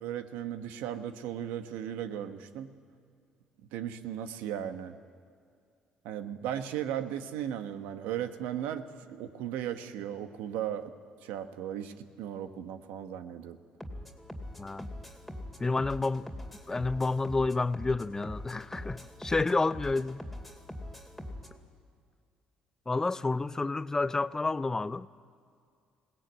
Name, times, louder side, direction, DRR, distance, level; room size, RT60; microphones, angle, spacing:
voice 1, 0.0-2.7 3.7-4.9 6.0-10.9 11.2-13.6, right 10 dB, 85° right, 1.2 m, -36 dB
sound 1, 13.8-21.6, left 1 dB, ahead, 2.5 m, -43 dB
voice 2, 14.6-14.9 15.6-16.3 16.7-20.2 22.9-25.1, left 3 dB, 20° left, 0.5 m, -29 dB
21.0 x 17.5 x 9.1 m
cardioid pair, 85°, 3 cm